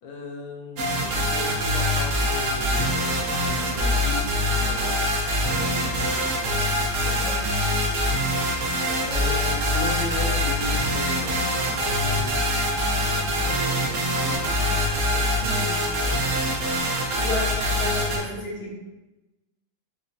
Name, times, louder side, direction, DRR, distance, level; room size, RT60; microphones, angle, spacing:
voice 1, 0.0-5.0 5.5-7.4 9.1-16.3, left 1 dB, 90° left, -1 dB, 1.6 m, -37 dB
sound 1, 0.8-18.2, equal, 80° right, 0.7 m, -24 dB
voice 2, 17.1-18.8, left 1 dB, 60° left, -4 dB, 1.4 m, -32 dB
4.8 x 2.4 x 2.6 m, 1.0 s
omnidirectional pair, 2.2 m